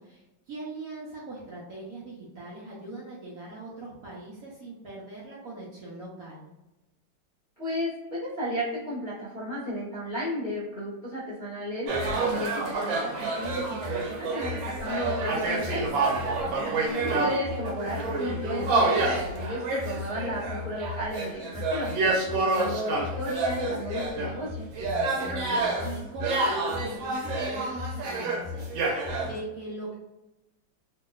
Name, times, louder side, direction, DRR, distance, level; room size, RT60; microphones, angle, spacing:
voice 1, 0.0-6.5 16.1-16.9 24.8-30.0, right 2 dB, 60° right, -5 dB, 1.0 m, -41 dB
voice 2, 7.6-11.9 12.2-15.8 16.6-21.9 22.4-24.7, equal, 35° left, -8 dB, 0.8 m, -34 dB
sound 1, 11.9-29.4, right 2 dB, 90° right, 1.4 m, -28 dB
3.0 x 2.7 x 2.3 m, 0.98 s
omnidirectional pair, 2.0 m